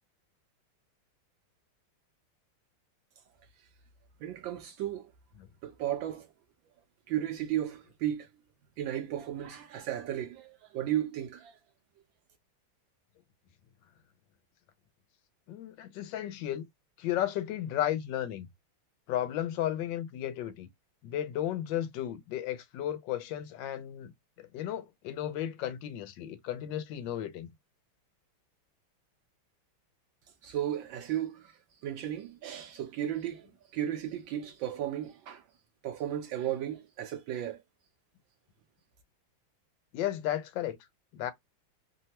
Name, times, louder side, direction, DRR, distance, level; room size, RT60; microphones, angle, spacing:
voice 1, 4.2-5.1 5.6-6.3 7.1-8.3 8.8-11.6 30.4-35.4 35.8-37.6, right 11 dB, 75° right, 1.2 m, -34 dB
voice 2, 15.5-16.6 17.0-18.5 19.1-20.7 21.0-24.1 24.4-27.5 39.9-40.8 41.1-41.3, left 11 dB, 70° left, 1.2 m, -34 dB
3.4 x 2.1 x 2.8 m
omnidirectional pair, 2.3 m